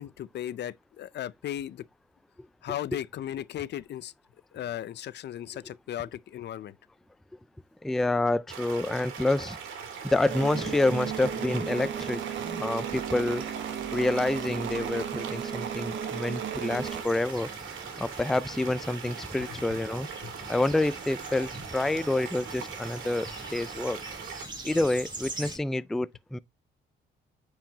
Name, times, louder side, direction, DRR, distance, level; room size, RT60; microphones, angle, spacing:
voice 1, 0.0-1.9 2.6-4.1 4.5-6.7 19.5-19.6 20.2-20.3, left 11 dB, 60° left, 0.5 m, -36 dB
voice 2, 7.8-9.6 10.0-12.2 12.4-13.4 13.9-17.5 18.0-20.1 20.5-24.0 24.6-26.4, left 2 dB, ahead, 0.3 m, -28 dB
sound 1, 8.5-24.5, right 6 dB, 85° right, 2.4 m, -41 dB
sound 2, 10.3-17.0, right 8 dB, 70° right, 1.3 m, -35 dB
sound 3, 16.7-25.6, right 2 dB, 20° right, 3.1 m, -44 dB
8.9 x 4.9 x 2.8 m
cardioid pair, 90°, 20 cm